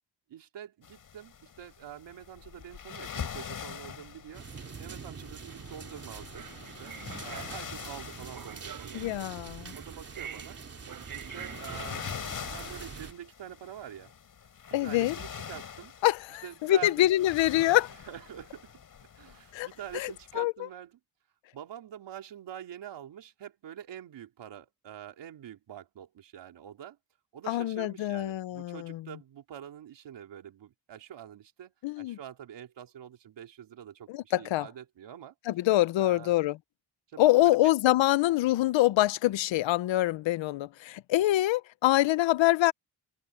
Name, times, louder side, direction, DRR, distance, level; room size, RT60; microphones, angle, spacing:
voice 1, 0.3-4.5 4.8-9.1 9.7-10.6 11.1-12.1 12.5-14.1 14.7-15.9 16.4-17.1 17.9-18.7 19.2-21.0 21.5-27.0 27.3-35.3 36.0-36.3 37.1-37.7, right 10 dB, 70° right, 3.5 m, -46 dB
sound 1, 0.8-20.4, left 7 dB, 45° left, 5.2 m, -44 dB
sound 2, 4.3-13.1, right 5 dB, 30° right, 3.2 m, -45 dB
sound 3, 6.3-13.0, right 8 dB, 50° right, 4.1 m, -46 dB
voice 2, 8.9-9.7 14.7-15.2 16.0-17.9 19.5-19.7 19.9-20.5 27.5-29.1 31.8-32.2 34.1-34.7 35.5-36.6 37.2-42.7, left 15 dB, 80° left, 0.7 m, -25 dB
wide cardioid pair, 175°, 44 cm